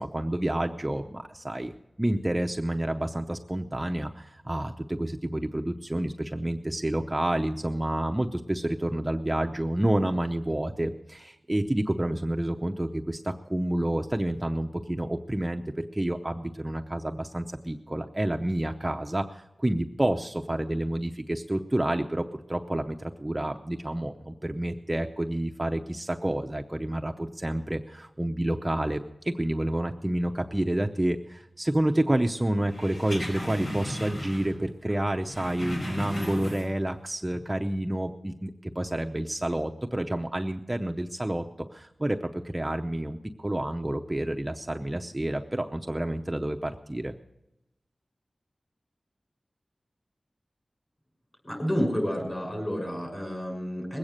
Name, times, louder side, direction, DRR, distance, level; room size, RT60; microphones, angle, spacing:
voice 1, 0.0-1.7 2.0-47.1, right 1 dB, 20° right, 3 dB, 0.7 m, -29 dB
sound 1, 32.7-34.6 34.9-36.9 37.2-37.4, equal, 80° left, 4.9 m, -36 dB
voice 2, 51.4-54.0, equal, 30° left, 1 dB, 6.3 m, -30 dB
21.0 x 8.8 x 6.5 m, 0.89 s
wide cardioid pair, 70°, 0 cm